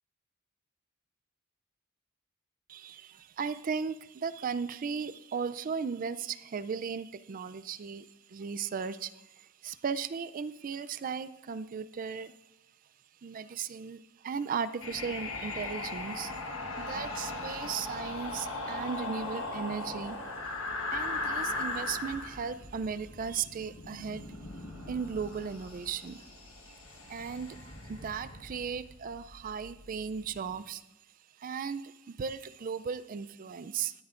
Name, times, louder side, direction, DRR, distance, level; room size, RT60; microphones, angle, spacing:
voice 1, 2.7-12.3 13.2-16.3 16.8-20.2 20.9-24.2 24.9-26.3 27.1-30.8 31.4-33.9, right 6 dB, 40° right, 14 dB, 0.4 m, -36 dB
sound 1, 14.8-30.6, left 2 dB, 75° left, 1.4 m, -39 dB
17.0 x 12.0 x 2.5 m, 0.97 s
head